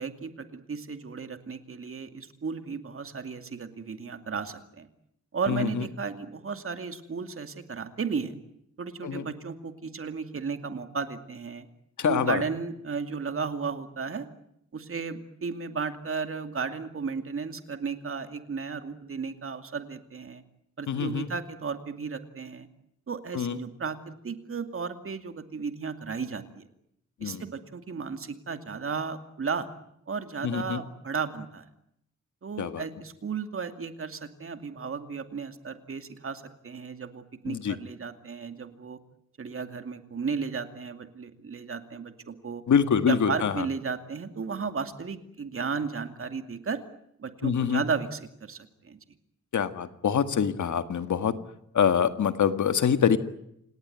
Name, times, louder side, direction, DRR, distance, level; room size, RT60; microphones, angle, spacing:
voice 1, 0.0-4.9 5.3-8.4 8.8-11.7 12.0-14.3 14.7-20.4 20.8-22.7 23.1-26.6 27.2-29.7 30.1-31.7 32.4-39.0 39.4-42.6 43.1-46.8 47.2-49.0, right 5 dB, 45° right, 8 dB, 2.5 m, -34 dB
voice 2, 5.5-5.8 9.0-9.3 12.0-12.4 20.9-21.3 23.3-23.6 27.2-27.4 30.4-30.8 32.6-32.8 37.5-37.8 42.7-43.7 47.4-47.8 49.5-51.3 51.7-53.2, left 7 dB, 75° left, 10 dB, 1.8 m, -25 dB
28.5 x 18.5 x 9.4 m, 0.76 s
wide cardioid pair, 140°, 30 cm